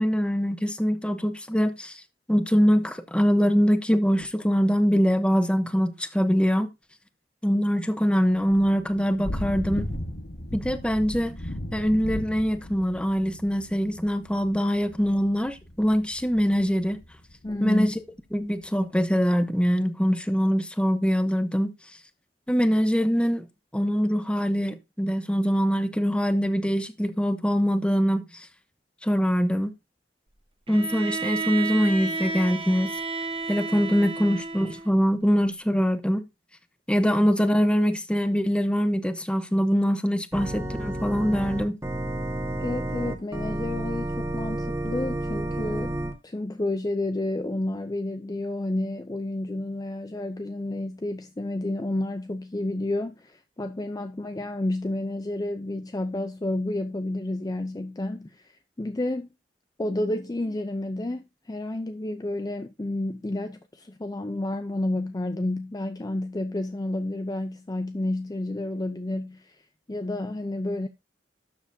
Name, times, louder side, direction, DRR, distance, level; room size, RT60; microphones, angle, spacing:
voice 1, 0.0-2.0 2.3-6.7 7.4-9.9 10.5-11.4 11.7-17.0 17.6-17.9 18.3-21.7 22.5-23.5 23.7-28.5 29.0-29.7 30.7-32.9 33.5-36.2 36.9-41.8, equal, 5° left, 0.8 m, -23 dB
Thunder / Rain, 8.3-17.8, left 1 dB, 65° left, 1.3 m, -37 dB
voice 2, 17.4-17.9 42.6-58.5 58.8-59.3 59.8-69.6 69.9-70.9, left 1 dB, 20° left, 0.5 m, -30 dB
Bowed string instrument, 30.7-35.0, right 4 dB, 30° right, 1.1 m, -32 dB
Organ, 40.3-46.1, right 1 dB, 15° right, 1.5 m, -30 dB
12.0 x 7.2 x 2.7 m
head